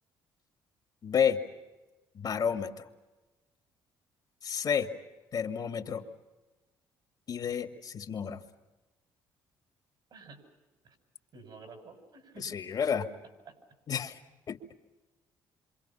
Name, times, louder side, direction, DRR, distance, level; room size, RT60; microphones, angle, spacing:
voice 1, 1.0-1.4 2.1-2.9 4.4-4.9 5.3-6.0 7.3-8.4 12.4-13.1 13.9-14.2 14.5-14.6, left 7 dB, 50° left, 5 dB, 2.2 m, -30 dB
voice 2, 10.1-10.4 10.8-11.0 11.3-12.6 13.4-13.6, right 3 dB, 60° right, 5 dB, 6.4 m, -50 dB
27.5 x 26.0 x 5.7 m, 1.1 s
cardioid pair, 85°, 9 cm